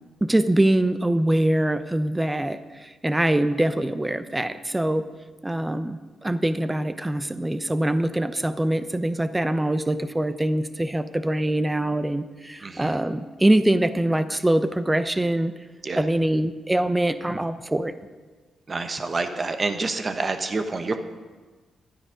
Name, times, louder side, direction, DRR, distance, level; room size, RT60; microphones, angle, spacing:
voice 1, 0.2-5.1 5.4-15.5 15.9-17.9, right 1 dB, 15° right, 12 dB, 0.8 m, -23 dB
voice 2, 12.6-13.0 15.8-16.1 18.7-21.0, right 3 dB, 40° right, 7 dB, 1.2 m, -28 dB
12.5 x 9.8 x 5.2 m, 1.3 s
supercardioid pair, 55°, 0 cm